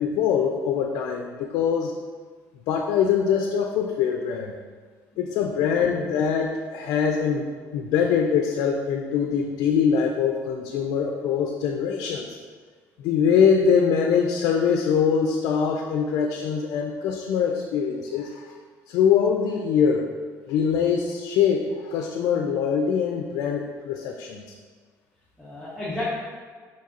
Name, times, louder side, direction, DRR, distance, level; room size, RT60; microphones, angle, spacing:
voice 1, 0.0-1.9 2.7-4.5 5.2-12.3 13.0-18.4 18.9-20.0 20.5-24.4, left 7 dB, 80° left, 2 dB, 0.4 m, -23 dB
voice 2, 5.6-5.9 25.4-26.1, left 1 dB, ahead, -10 dB, 1.0 m, -34 dB
5.1 x 4.1 x 2.5 m, 1.6 s
cardioid pair, 140°, 6 cm